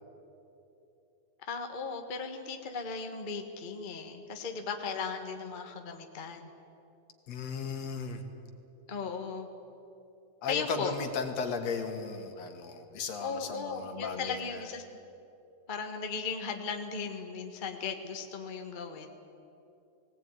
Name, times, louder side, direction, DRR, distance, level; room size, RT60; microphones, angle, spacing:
voice 1, 1.4-6.5 8.9-9.5 10.5-10.9 13.2-14.8 15.7-19.1, left 5 dB, 35° left, 4 dB, 0.8 m, -37 dB
voice 2, 7.3-8.2 10.4-14.6, left 5 dB, 65° left, 5 dB, 2.8 m, -36 dB
20.0 x 18.0 x 9.4 m, 2.8 s
omnidirectional pair, 3.3 m